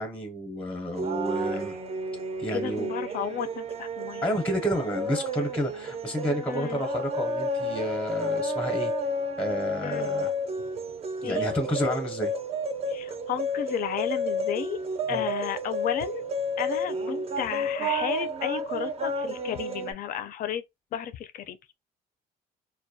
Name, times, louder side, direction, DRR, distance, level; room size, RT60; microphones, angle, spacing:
voice 1, 0.0-1.8 2.4-2.9 4.2-8.9 9.4-10.3 11.2-12.3 15.1-15.3, equal, 10° left, 0.6 m, -30 dB
sound 1, 0.9-19.9, equal, 35° right, 0.4 m, -31 dB
voice 2, 2.5-4.3 6.5-6.8 9.8-10.1 11.2-11.5 12.9-14.8 15.1-16.2 16.6-20.6 20.9-21.6, left 9 dB, 55° left, 0.4 m, -33 dB
2.3 x 2.1 x 2.6 m
cardioid pair, 110°, 17 cm